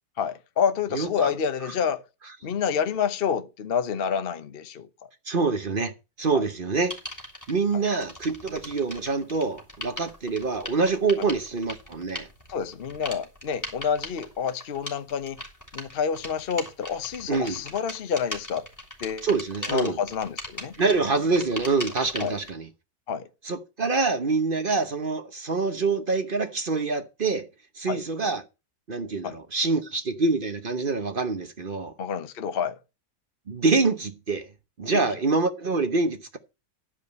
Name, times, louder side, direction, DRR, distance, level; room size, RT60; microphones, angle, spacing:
voice 1, 0.2-2.0 2.4-4.9 6.3-6.4 7.7-7.8 11.2-11.3 12.5-15.4 15.7-18.7 19.0-19.3 19.7-20.8 22.2-22.4 23.1-23.3 27.9-28.0 29.2-29.4 32.0-32.8 34.9-35.1, left 7 dB, 45° left, 0.8 m, -28 dB
voice 2, 0.9-1.3 5.3-5.9 6.2-6.9 7.5-12.3 17.3-17.6 19.2-20.0 20.8-22.7 23.4-27.5 27.8-28.4 28.9-31.9 33.5-34.5 34.8-36.4, right 4 dB, 40° right, 0.9 m, -25 dB
sound 1, 6.9-7.5 8.0-22.5, left 1 dB, 10° left, 3.3 m, -39 dB
12.0 x 5.1 x 8.0 m
omnidirectional pair, 1.9 m